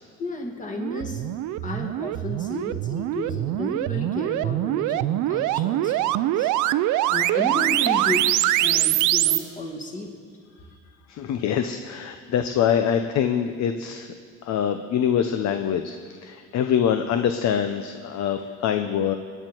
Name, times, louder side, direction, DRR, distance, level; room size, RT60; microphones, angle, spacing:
voice 1, 0.2-1.2 1.6-6.5 7.1-8.3 8.6-10.2, left 1 dB, 25° left, 1 dB, 2.4 m, -32 dB
sound 1, 0.8-9.4, right 14 dB, 70° right, 0.6 m, -23 dB
voice 2, 11.1-14.1 14.4-16.0 16.2-19.1, left 8 dB, 60° left, 7 dB, 0.9 m, -24 dB
26.0 x 10.0 x 4.6 m, 2.1 s
cardioid pair, 125°, 31 cm